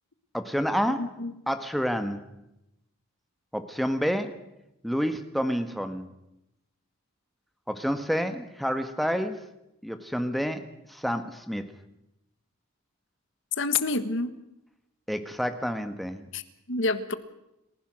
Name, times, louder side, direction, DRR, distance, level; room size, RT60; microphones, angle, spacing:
voice 1, 0.3-1.1 1.5-2.3 3.5-4.4 4.8-6.1 7.7-9.4 9.8-11.7 15.1-16.2, equal, ahead, 7 dB, 1.4 m, -29 dB
voice 2, 1.0-1.3 13.6-14.3 16.3-17.1, left 3 dB, 55° left, 11 dB, 1.4 m, -28 dB
30.0 x 15.5 x 6.4 m, 0.88 s
head